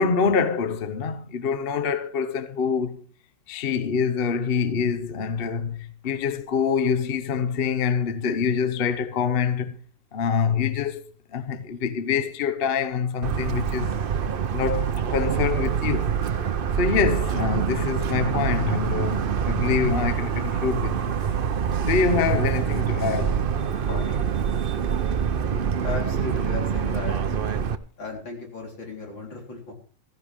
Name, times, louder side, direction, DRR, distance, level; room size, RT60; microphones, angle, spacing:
voice 1, 0.0-3.1 3.5-9.8 10.1-11.0 11.3-14.0 14.5-16.1 16.8-21.0 21.8-23.4 23.9-24.3, left 6 dB, 45° left, 0.8 m, -25 dB
Motor vehicle (road) / Siren, 13.2-27.8, right 7 dB, 70° right, 0.5 m, -25 dB
voice 2, 25.8-27.2 28.0-29.7, left 3 dB, 85° left, 4.5 m, -35 dB
15.5 x 15.0 x 3.5 m
omnidirectional pair, 2.0 m